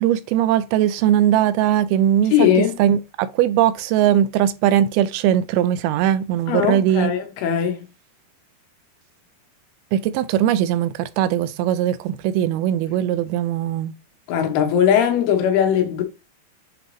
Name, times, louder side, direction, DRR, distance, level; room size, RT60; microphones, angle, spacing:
voice 1, 0.0-7.1 9.9-13.9, right 11 dB, 85° right, 2.5 m, -20 dB
voice 2, 2.3-2.8 6.5-7.8 14.3-16.0, left 9 dB, 90° left, 3.1 m, -19 dB
7.9 x 3.9 x 3.2 m
omnidirectional pair, 4.4 m